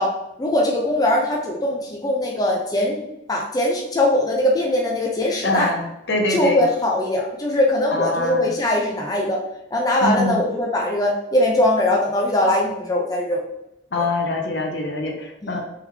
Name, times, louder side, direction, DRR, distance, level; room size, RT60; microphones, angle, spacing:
voice 1, 0.0-3.0 3.3-5.7 6.3-9.4 9.7-13.4 14.0-14.1 15.4-15.6, left 1 dB, 20° left, -1 dB, 0.5 m, -21 dB
voice 2, 5.4-6.6 7.9-8.5 10.0-10.4 13.9-15.7, left 2 dB, 65° left, 2 dB, 0.8 m, -24 dB
3.5 x 3.4 x 3.1 m, 0.84 s
head